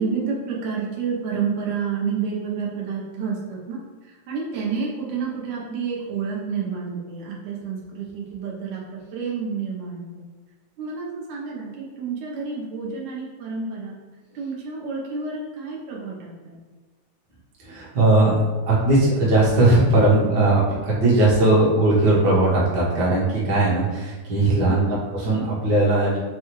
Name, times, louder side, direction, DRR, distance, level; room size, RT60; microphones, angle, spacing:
voice 1, 0.0-10.3 10.8-13.9 14.3-16.6 24.7-25.0, right 5 dB, 75° right, -4 dB, 2.0 m, -29 dB
voice 2, 17.6-18.4 18.7-26.2, right 2 dB, 55° right, -7 dB, 1.2 m, -19 dB
6.4 x 2.2 x 3.0 m, 1.3 s
omnidirectional pair, 3.5 m